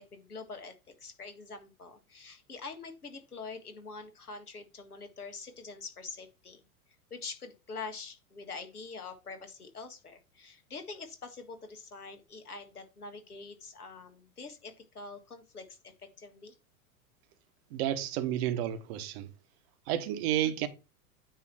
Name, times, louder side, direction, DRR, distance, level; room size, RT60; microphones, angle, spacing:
voice 1, 0.0-6.6 7.1-16.5 20.4-20.5, left 4 dB, 80° left, 1.6 m, -45 dB
voice 2, 17.7-19.3 19.9-20.7, right 11 dB, 45° right, 1.1 m, -31 dB
9.0 x 3.1 x 5.7 m
figure-of-eight pair, 95°, 45 cm